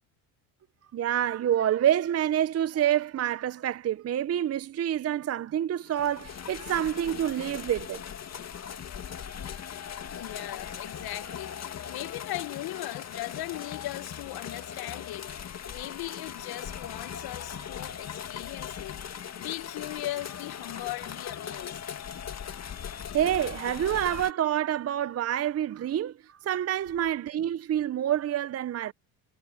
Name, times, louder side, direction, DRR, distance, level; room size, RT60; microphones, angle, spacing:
voice 1, 0.9-8.0 23.1-28.9, right 11 dB, 35° right, 0.7 m, -27 dB
sound 1, 5.9-24.3, left 8 dB, 35° left, 1.9 m, -39 dB
voice 2, 10.1-19.0 19.3-22.0, left 16 dB, 60° left, 1.2 m, -39 dB
supercardioid pair, 85°, 42 cm